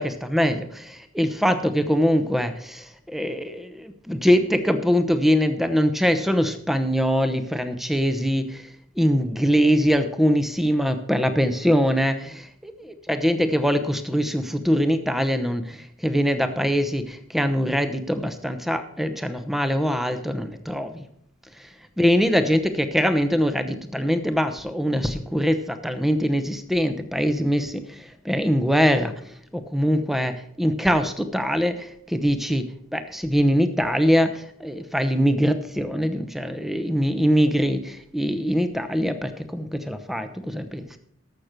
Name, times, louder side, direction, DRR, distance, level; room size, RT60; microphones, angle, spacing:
voice 1, 0.0-8.6 9.0-15.8 16.0-21.0 22.0-27.8 28.2-29.1 29.5-30.3 30.6-32.7 32.9-40.9, equal, ahead, 9 dB, 0.9 m, -23 dB
13.5 x 6.6 x 5.9 m, 0.67 s
head